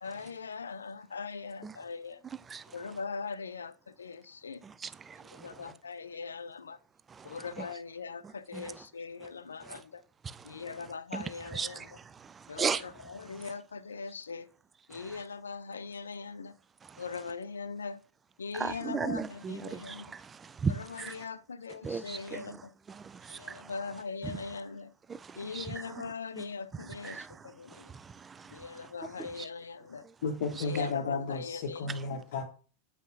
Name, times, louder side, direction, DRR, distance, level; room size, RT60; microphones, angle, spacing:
voice 1, 0.0-2.2 2.7-4.6 5.3-6.8 7.2-10.0 10.4-11.9 12.5-14.5 14.9-16.5 17.0-18.0 18.4-20.1 20.7-22.7 23.3-24.9 25.3-27.9 28.5-30.0 30.6-31.8, left 5 dB, 70° left, 0.4 m, -41 dB
voice 2, 4.6-5.7 7.1-7.7 8.5-8.8 9.6-9.8 10.2-10.6 11.1-12.9 13.3-13.5 14.9-15.2 16.8-17.0 18.5-21.3 21.8-22.6 22.9-23.7 24.2-24.4 25.1-26.5 26.9-28.9 29.2-29.5, right 5 dB, 20° right, 0.3 m, -38 dB
voice 3, 30.2-32.4, left 4 dB, 55° left, 0.8 m, -33 dB
8.1 x 5.4 x 2.6 m
figure-of-eight pair, 90°, 0 cm